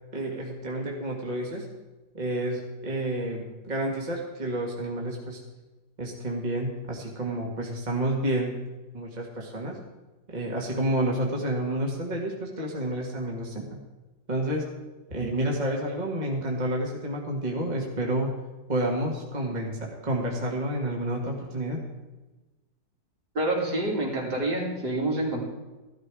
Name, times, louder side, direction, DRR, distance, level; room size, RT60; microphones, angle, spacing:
voice 1, 0.1-1.7 2.1-5.4 6.0-8.5 8.9-9.8 10.3-13.7 14.3-14.6 15.1-18.3 18.7-21.8, right 1 dB, 25° right, -1 dB, 2.1 m, -29 dB
voice 2, 23.4-25.4, right 1 dB, 65° right, -3 dB, 3.7 m, -27 dB
15.0 x 12.5 x 4.9 m, 1.2 s
omnidirectional pair, 1.9 m